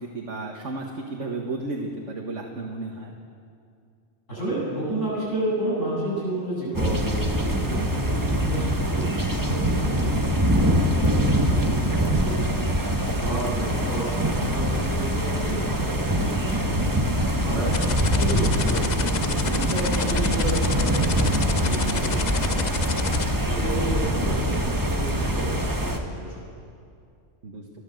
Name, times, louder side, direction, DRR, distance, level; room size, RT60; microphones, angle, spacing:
voice 1, 0.0-3.1 11.0-11.4 17.5-18.0 27.4-27.6, right 3 dB, 70° right, 0 dB, 1.9 m, -33 dB
voice 2, 4.3-12.6 12.9-17.6 18.0-18.9 19.3-26.4, right 1 dB, 75° left, -6 dB, 8.2 m, -32 dB
sound 1, 6.7-26.0, equal, 15° right, 1.4 m, -24 dB
sound 2, 17.7-23.2, left 6 dB, 45° left, 0.7 m, -30 dB
29.5 x 12.0 x 7.8 m, 2.4 s
omnidirectional pair, 1.3 m